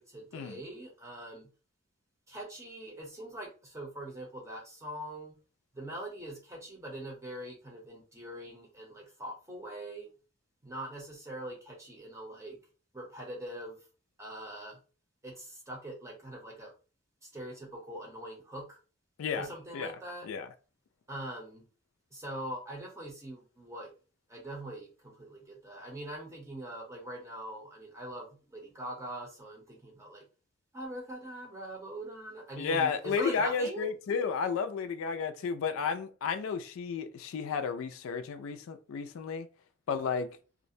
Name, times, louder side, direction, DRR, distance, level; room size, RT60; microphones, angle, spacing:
voice 1, 0.0-1.5 2.3-5.4 5.7-10.1 10.6-12.6 12.9-13.8 14.2-14.8 15.2-16.7 17.2-18.8 19.3-20.3 21.1-21.6 22.1-23.9 24.3-30.2 30.7-33.9, right 1 dB, 15° right, 0.6 m, -42 dB
voice 2, 32.6-39.5 39.9-40.4, left 5 dB, 80° left, 0.3 m, -32 dB
2.5 x 2.0 x 2.6 m
head